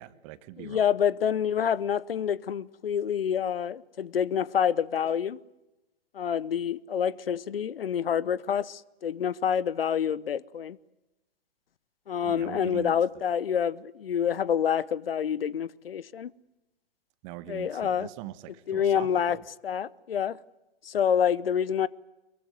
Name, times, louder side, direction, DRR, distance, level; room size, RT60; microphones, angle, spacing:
voice 1, 0.0-0.8 12.2-13.0 17.2-19.4, right 15 dB, 30° right, 1.4 m, -42 dB
voice 2, 0.6-5.4 6.1-10.8 12.1-16.3 17.5-18.1 18.7-19.4 19.6-20.4 20.8-21.9, left 8 dB, 65° left, 0.9 m, -27 dB
24.0 x 23.0 x 9.5 m
figure-of-eight pair, 125°, 31 cm